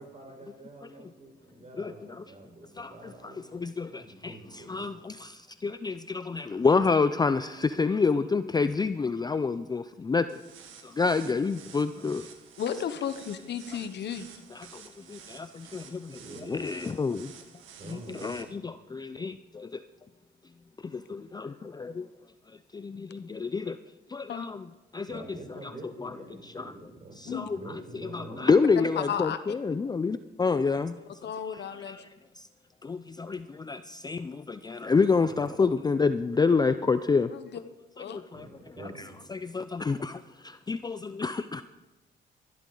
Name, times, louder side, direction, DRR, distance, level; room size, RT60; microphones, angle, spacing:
voice 1, 0.0-4.9 11.6-11.7 16.2-16.5 17.8-18.4 25.1-28.5 35.3-35.5 38.3-39.0, right 2 dB, 35° right, 3 dB, 4.4 m, -46 dB
voice 2, 1.8-2.2 2.8-10.4 10.8-12.3 13.7-13.8 14.5-17.3 17.9-19.8 20.8-21.4 21.8-22.0 22.5-23.8 24.1-24.7 24.9-25.7 26.0-26.1 26.4-26.7 27.2-27.6 27.9-31.0 31.2-32.5 32.8-37.3 38.0-38.5 39.3-41.6, left 4 dB, 20° left, 12 dB, 0.4 m, -29 dB
sound 1, 10.3-18.4, right 7 dB, 85° right, 1.7 m, -51 dB
voice 3, 12.6-14.3 24.3-24.5 27.3-27.5 29.0-29.4 31.2-32.0 37.3-37.6 38.0-38.2, left 8 dB, 60° left, 11 dB, 0.9 m, -33 dB
21.5 x 12.0 x 3.9 m, 1.1 s
cardioid pair, 90°, 20 cm